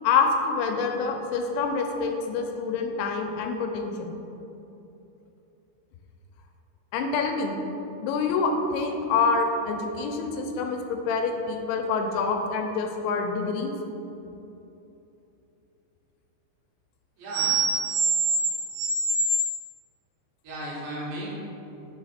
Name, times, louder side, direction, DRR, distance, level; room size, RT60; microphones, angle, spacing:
voice 1, 0.0-4.1 6.9-7.6 8.0-13.7, left 4 dB, 85° left, 3 dB, 2.9 m, -26 dB
voice 2, 17.2-18.2 18.7-19.1 20.4-21.3, right 4 dB, 75° right, -6 dB, 3.4 m, -27 dB
7.2 x 3.9 x 4.2 m, 3.0 s
omnidirectional pair, 5.2 m